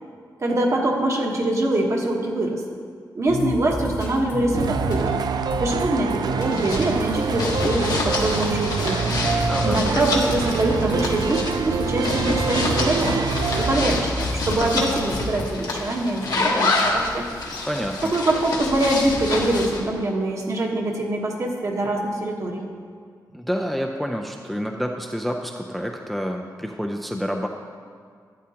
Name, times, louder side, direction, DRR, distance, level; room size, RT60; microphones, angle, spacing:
voice 1, 0.4-2.6 3.1-5.2 5.6-9.0 9.6-13.3 13.6-17.3 18.1-22.6, right 1 dB, 45° right, 0 dB, 1.2 m, -24 dB
sound 1, 3.3-15.4, left 1 dB, 85° left, 2.6 m, -31 dB
sound 2, 4.5-14.0, right 6 dB, 70° right, 0.4 m, -26 dB
sound 3, 6.5-19.8, left 2 dB, 65° left, 1.2 m, -27 dB
voice 2, 9.5-9.8 17.7-18.1 23.3-27.5, equal, ahead, 2 dB, 0.4 m, -28 dB
11.5 x 8.6 x 2.8 m, 2.1 s
wide cardioid pair, 115°, 7 cm